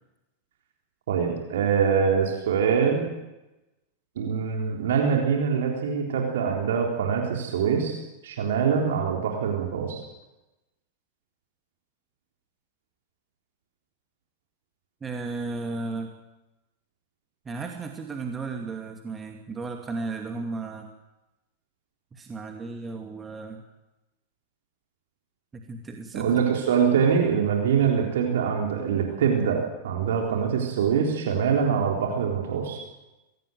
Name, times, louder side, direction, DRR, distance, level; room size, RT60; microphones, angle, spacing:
voice 1, 1.1-3.1 4.2-10.0 26.1-32.8, right 6 dB, 60° right, 1 dB, 3.7 m, -24 dB
voice 2, 15.0-16.1 17.5-20.9 22.1-23.6 25.5-26.3, right 3 dB, 15° right, 3 dB, 2.5 m, -34 dB
23.5 x 17.5 x 8.0 m, 0.99 s
figure-of-eight pair, 90°, 0 cm